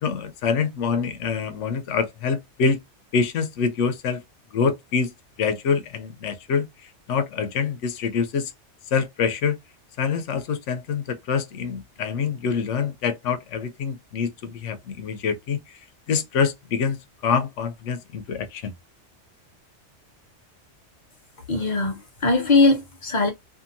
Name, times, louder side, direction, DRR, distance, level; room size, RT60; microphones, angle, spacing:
voice 1, 0.0-2.8 3.1-4.2 4.5-5.1 5.4-6.7 7.1-8.5 8.9-9.6 10.0-15.6 16.1-18.7, left 6 dB, 90° left, 1.0 m, -25 dB
voice 2, 21.5-23.3, left 3 dB, 45° left, 0.8 m, -20 dB
2.8 x 2.5 x 2.5 m
omnidirectional pair, 1.2 m